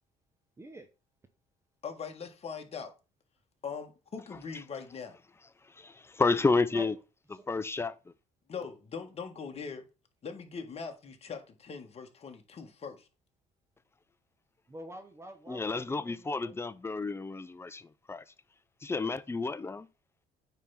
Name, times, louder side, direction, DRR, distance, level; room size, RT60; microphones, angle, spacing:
voice 1, 0.6-0.9 6.7-6.9 7.3-7.5 14.7-16.6, right 1 dB, 15° right, 0.9 m, -46 dB
voice 2, 1.8-2.9 3.6-5.2 8.5-9.8 10.2-13.1, left 5 dB, 35° left, 1.7 m, -41 dB
voice 3, 5.7-6.9 7.5-7.9 15.5-18.2 18.8-19.9, left 3 dB, 15° left, 0.6 m, -30 dB
9.1 x 3.5 x 5.8 m
cardioid pair, 110°, 17 cm